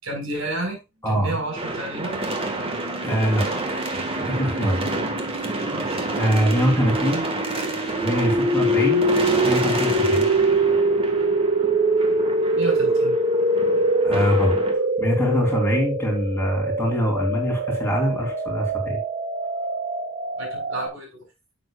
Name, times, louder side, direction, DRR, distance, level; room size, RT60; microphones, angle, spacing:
voice 1, 0.0-0.8 1.0-2.2 4.5-5.4 5.7-6.0 12.5-13.2 20.4-21.2, right 2 dB, 70° right, 2 dB, 4.8 m, -31 dB
sound 1, 1.6-14.7, right 2 dB, 25° right, 1.6 m, -29 dB
sound 2, 1.7-20.9, right 1 dB, 40° right, 1.8 m, -24 dB
voice 2, 3.0-3.4 4.1-4.8 6.2-7.3 8.0-9.1 9.4-10.3 14.0-19.0, equal, 10° left, -1 dB, 3.5 m, -23 dB
11.0 x 7.5 x 2.4 m, 0.24 s
head